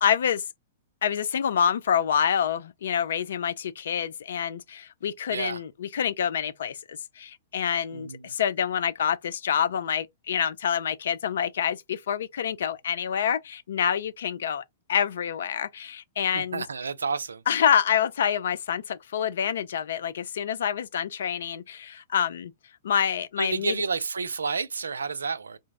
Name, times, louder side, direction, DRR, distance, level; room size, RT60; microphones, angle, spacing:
voice 1, 0.0-0.4 1.0-16.6 17.5-22.5 22.8-23.8, left 8 dB, 70° left, 0.3 m, -27 dB
voice 2, 5.3-5.6 7.9-8.3 16.3-17.4 23.4-25.6, right 5 dB, 85° right, 0.4 m, -30 dB
3.8 x 2.0 x 3.4 m
hypercardioid pair, 115°, 0 cm